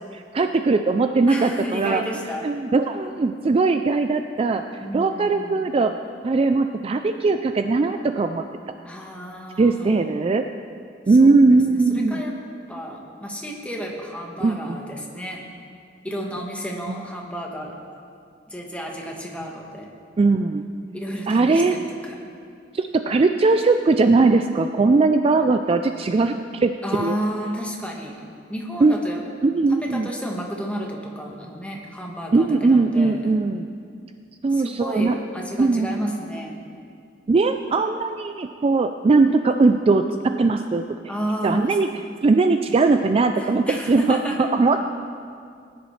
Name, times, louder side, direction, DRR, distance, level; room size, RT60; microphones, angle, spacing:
voice 1, 0.1-2.0 2.4-4.6 4.9-5.9 6.2-8.4 9.6-10.5 11.1-12.2 14.4-14.8 16.9-17.0 20.2-20.6 21.3-21.8 22.7-26.7 27.0-27.1 28.8-29.0 29.4-30.1 32.3-33.7 34.4-35.2 35.6-36.1 37.3-40.8 41.4-41.9 42.2-44.2 44.5-44.8, right 3 dB, 30° right, 7 dB, 0.3 m, -19 dB
voice 2, 1.3-2.5 4.8-5.6 8.8-10.1 11.2-12.3 12.7-15.4 16.0-17.7 18.5-19.9 20.9-21.8 22.0-22.2 26.8-28.2 28.5-29.2 29.7-33.3 34.5-36.6 41.1-41.8 43.4-44.5, equal, 5° left, -1 dB, 1.3 m, -32 dB
19.5 x 10.0 x 3.2 m, 2.3 s
head